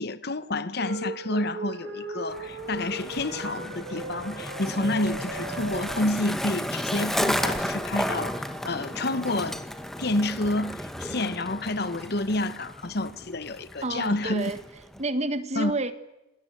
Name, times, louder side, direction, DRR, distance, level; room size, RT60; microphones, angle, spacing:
voice 1, 0.0-9.6 10.0-14.5 15.6-15.7, left 2 dB, 60° left, 1.2 m, -29 dB
sound 1, 0.8-6.0, right 2 dB, 90° right, 6.5 m, -37 dB
Skateboard, 2.3-15.0, equal, ahead, 1.7 m, -33 dB
Brass instrument, 6.7-11.9, left 2 dB, 20° left, 3.0 m, -48 dB
voice 2, 13.8-14.6 15.0-15.9, right 2 dB, 40° right, 1.7 m, -29 dB
27.0 x 20.0 x 9.3 m
head